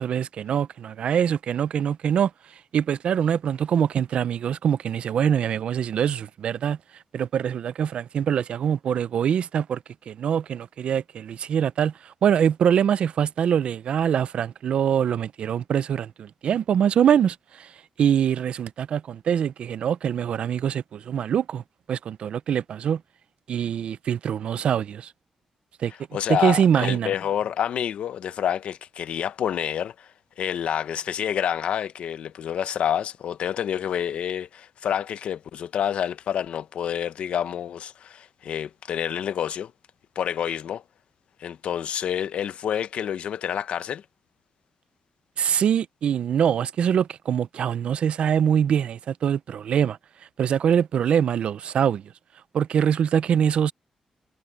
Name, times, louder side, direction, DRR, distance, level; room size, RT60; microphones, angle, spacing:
voice 1, 0.0-2.3 2.7-6.8 7.1-9.8 10.1-17.7 18.0-21.6 21.9-23.0 23.5-25.1 25.8-25.9 26.3-27.1 45.4-50.0 50.4-52.1 52.5-53.7, right 8 dB, 65° right, 0.5 m, -23 dB
voice 2, 26.1-30.1 30.4-39.7 40.2-40.8 41.4-44.0, left 9 dB, 75° left, 0.8 m, -28 dB
wide cardioid pair, 150°, 2 cm